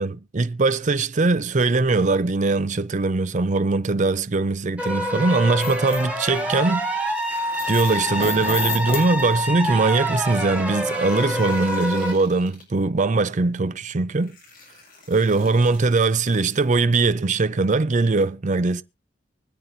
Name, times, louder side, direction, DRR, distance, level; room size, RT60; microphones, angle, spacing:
voice 1, 0.0-6.9 7.7-14.3 15.1-18.8, right 3 dB, 40° right, 0.6 m, -21 dB
sound 1, 4.8-12.1, equal, 5° right, 3.3 m, -26 dB
sound 2, 5.6-6.1 7.6-9.7 10.4-10.6 11.0-11.1, left 6 dB, 30° left, 0.8 m, -31 dB
sound 3, 6.8-9.4 10.8-12.6 13.7-13.8 14.2-16.7, left 3 dB, 50° left, 8.0 m, -47 dB
24.0 x 8.2 x 2.7 m
head